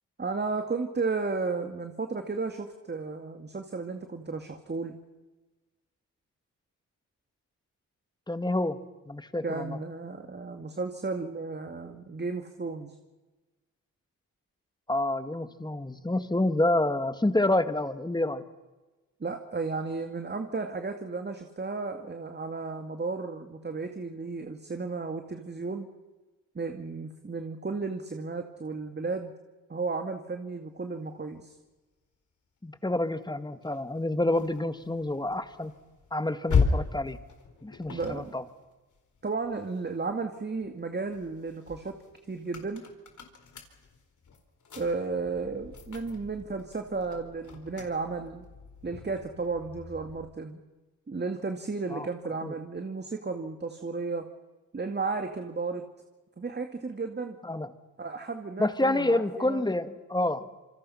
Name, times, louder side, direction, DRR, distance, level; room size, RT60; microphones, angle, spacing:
voice 1, 0.2-5.0 9.4-12.9 19.2-25.9 26.6-29.3 29.7-31.6 37.9-38.3 39.2-41.9 42.3-42.8 44.8-48.4 48.8-50.6 51.1-54.3 54.7-55.8 56.4-57.4 58.0-59.6, right 4 dB, 30° right, 6 dB, 2.2 m, -33 dB
voice 2, 8.3-8.8 9.1-9.8 14.9-18.4 32.6-35.7 36.1-37.2 37.6-38.4 51.9-52.1 52.4-52.5 57.4-57.7 58.6-60.5, left 2 dB, 10° left, 10 dB, 1.9 m, -28 dB
sound 1, 33.6-40.2 40.6-50.4, left 5 dB, 60° left, 4.1 m, -36 dB
27.0 x 24.5 x 5.8 m, 1.2 s
supercardioid pair, 60°, 34 cm